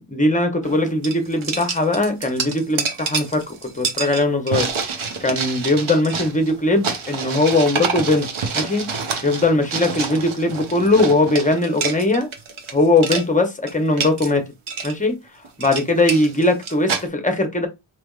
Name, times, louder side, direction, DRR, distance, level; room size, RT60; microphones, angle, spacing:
voice 1, 0.1-4.7 5.2-8.3 8.5-8.8 9.2-12.3 12.7-14.4 14.8-15.2 15.6-17.7, left 2 dB, 15° left, 0.7 m, -19 dB
sound 1, 0.6-0.8 1.0-12.7 13.0-13.3 13.7-14.3 14.7-14.9 15.4-17.1, right 5 dB, 80° right, 0.9 m, -27 dB
4.4 x 3.3 x 2.3 m
wide cardioid pair, 175°, 48 cm